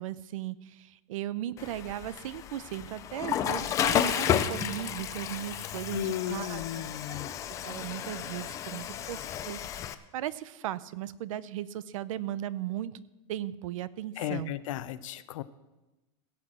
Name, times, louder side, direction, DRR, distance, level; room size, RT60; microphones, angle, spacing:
voice 1, 0.0-7.2 7.6-9.6 10.1-13.0 13.3-14.6, right 12 dB, 85° right, 17 dB, 0.6 m, -37 dB
Water / Toilet flush, 1.6-9.9, left 10 dB, 20° left, 0.4 m, -32 dB
voice 2, 5.9-7.3 14.2-15.4, left 13 dB, 80° left, 14 dB, 0.7 m, -35 dB
16.5 x 5.9 x 7.8 m, 1.1 s
supercardioid pair, 170°, 17 cm